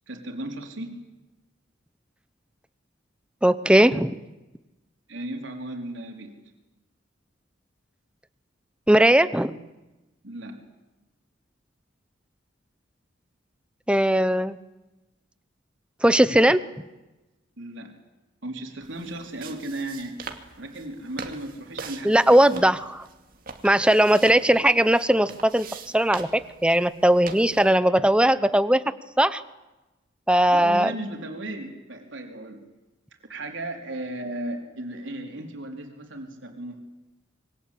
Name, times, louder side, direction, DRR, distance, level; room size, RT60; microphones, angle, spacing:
voice 1, 0.1-1.0 5.1-6.4 10.2-10.6 17.6-17.9 18.4-22.2 22.5-22.6 30.5-32.6 33.3-36.8, right 1 dB, 70° right, 3 dB, 4.2 m, -35 dB
voice 2, 3.4-4.2 8.9-9.5 13.9-14.6 16.0-16.6 22.0-22.8 23.6-25.7 25.9-28.8 29.2-29.4 30.3-30.9, right 1 dB, 5° right, 13 dB, 0.9 m, -19 dB
sound 1, 18.8-27.7, right 5 dB, 45° right, 2.5 m, -43 dB
26.5 x 23.5 x 8.6 m, 1.1 s
head